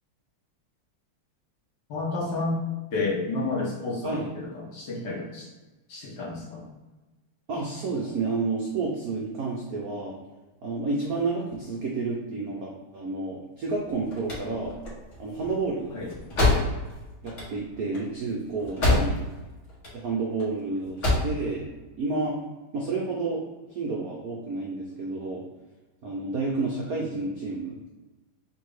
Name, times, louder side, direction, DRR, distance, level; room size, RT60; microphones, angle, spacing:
voice 1, 1.9-2.6 2.9-5.5 5.9-6.6 15.9-16.1 18.8-19.0, left 3 dB, 60° left, -3 dB, 1.3 m, -31 dB
voice 2, 7.5-10.1 10.6-14.8 15.2-15.9 16.4-16.6 17.2-19.2 19.9-21.7 22.0-22.4 22.7-23.4 23.7-25.4 26.0-27.8, right 3 dB, 80° right, -3 dB, 0.8 m, -30 dB
sound 1, 13.8-19.4 19.7-20.5 20.8-21.4, left 2 dB, 40° left, 1.3 m, -26 dB
3.7 x 2.7 x 4.7 m, 1.1 s
omnidirectional pair, 2.4 m